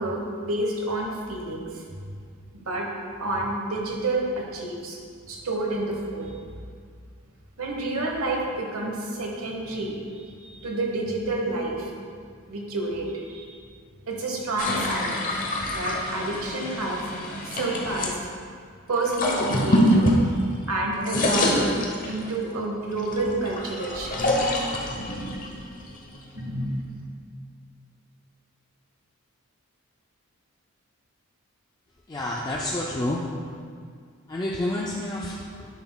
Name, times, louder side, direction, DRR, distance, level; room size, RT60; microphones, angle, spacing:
voice 1, 0.0-1.7 2.5-2.9 3.2-5.0 5.3-6.3 7.6-11.9 12.5-13.5 14.1-15.2 15.7-17.0 17.4-18.1 18.9-20.1 20.7-21.8 22.1-24.5 26.3-26.8, right 2 dB, 80° right, 0 dB, 1.1 m, -29 dB
sound 1, 14.6-18.1 19.0-20.7 20.9-22.4 23.0-26.4, left 1 dB, 40° left, 0.8 m, -26 dB
voice 2, 32.1-33.2 34.3-35.8, left 1 dB, 20° left, -3 dB, 0.4 m, -29 dB
10.5 x 5.9 x 2.3 m, 2.1 s
head